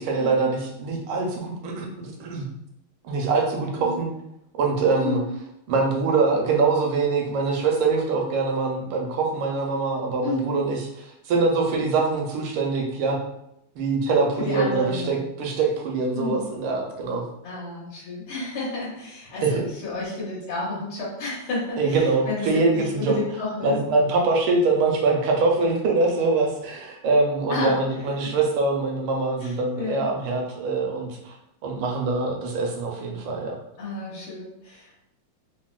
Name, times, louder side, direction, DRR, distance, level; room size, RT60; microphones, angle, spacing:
voice 1, 0.0-2.5 3.0-4.1 4.6-5.2 5.7-13.2 13.7-17.2 19.4-19.6 21.8-23.2 23.6-31.3 31.6-33.5, right 3 dB, 85° right, 1 dB, 1.5 m, -23 dB
voice 2, 10.2-10.6 14.4-15.2 16.1-16.4 17.4-22.4 22.7-23.8 27.5-27.8 28.2-28.3 29.4-30.1 33.8-35.1, left 3 dB, 85° left, -7 dB, 1.8 m, -31 dB
4.1 x 2.0 x 2.3 m, 0.81 s
omnidirectional pair, 2.3 m